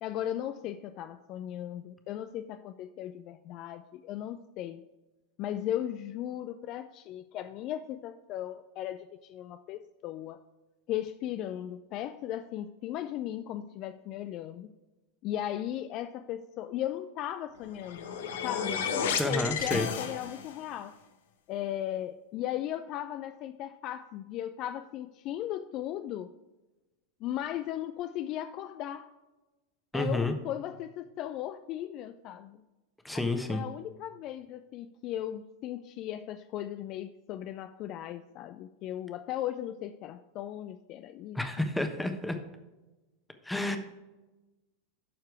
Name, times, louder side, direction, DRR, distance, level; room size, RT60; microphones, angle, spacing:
voice 1, 0.0-4.8 5.4-10.4 10.9-14.7 15.2-18.2 18.4-21.0 21.5-26.3 27.2-29.1 29.9-32.6 33.1-33.2 33.5-41.4, left 12 dB, 45° left, 11 dB, 0.4 m, -37 dB
sound 1, 17.6-20.6, left 6 dB, 65° left, 0.9 m, -33 dB
voice 2, 19.2-19.9 29.9-30.3 33.0-33.6 41.3-42.4 43.4-43.8, left 2 dB, 5° left, 6 dB, 1.1 m, -30 dB
12.0 x 4.6 x 4.7 m, 1.1 s
figure-of-eight pair, 85°, 0 cm